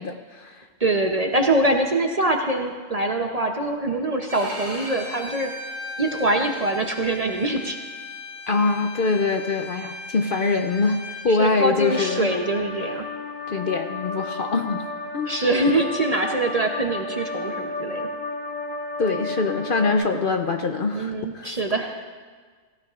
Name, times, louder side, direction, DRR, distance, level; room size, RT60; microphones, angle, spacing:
voice 1, 0.0-0.7 8.5-11.0 11.2-12.3 13.5-14.8 15.1-15.3 19.0-21.6, left 3 dB, 50° left, 5 dB, 0.7 m, -24 dB
voice 2, 0.8-5.5 6.0-7.8 11.3-13.0 15.3-18.1 20.9-22.0, right 2 dB, 35° right, 2 dB, 0.7 m, -24 dB
Bowed string instrument, 4.3-11.3, left 2 dB, 15° left, 3.6 m, -37 dB
sound 1, 11.9-19.9, left 3 dB, 85° left, 1.8 m, -32 dB
17.5 x 15.5 x 2.5 m, 1.5 s
omnidirectional pair, 1.3 m